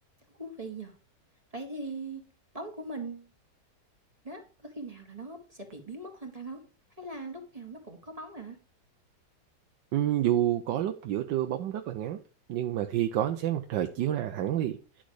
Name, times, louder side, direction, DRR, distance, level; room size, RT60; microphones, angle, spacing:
voice 1, 0.4-0.9 1.5-2.2 2.5-3.3 4.2-6.6 7.0-8.6, right 2 dB, 20° right, 3 dB, 1.8 m, -40 dB
voice 2, 9.9-12.2 12.5-15.0, right 12 dB, 80° right, 6 dB, 1.4 m, -29 dB
10.5 x 6.3 x 4.8 m, 0.36 s
omnidirectional pair, 2.0 m